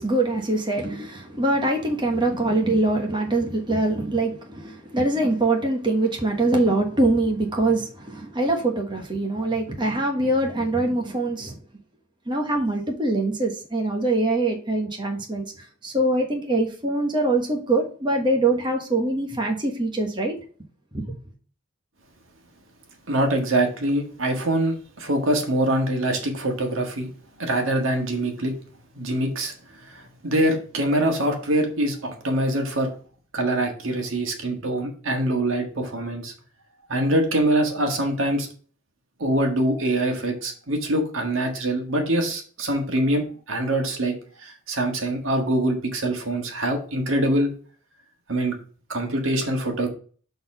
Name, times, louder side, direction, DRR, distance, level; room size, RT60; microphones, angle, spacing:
voice 1, 0.0-11.5 12.3-15.4 15.8-20.3 20.9-21.1, right 2 dB, 25° right, 1.3 m, -23 dB
voice 2, 23.1-27.1 27.4-28.5 28.9-29.5 29.9-32.9 33.3-36.3 36.9-38.5 39.2-44.1 44.4-47.5 48.3-48.5 48.9-49.9, right 1 dB, 75° right, 1.6 m, -24 dB
6.8 x 4.0 x 5.4 m
head